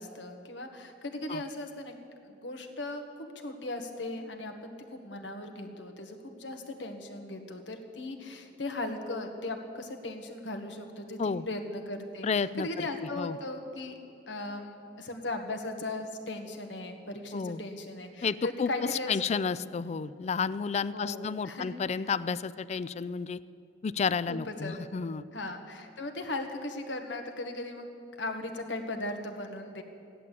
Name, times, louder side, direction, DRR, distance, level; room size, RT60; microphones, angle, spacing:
voice 1, 0.0-2.0 2.2-14.0 14.3-19.4 20.9-21.7 24.3-24.8 25.3-27.9 28.2-29.8, left 2 dB, 85° left, 5 dB, 1.6 m, -38 dB
voice 2, 12.2-13.4 17.3-17.6 18.2-23.4 23.8-25.3, left 5 dB, 40° left, 18 dB, 0.4 m, -31 dB
15.5 x 11.0 x 8.3 m, 2.7 s
head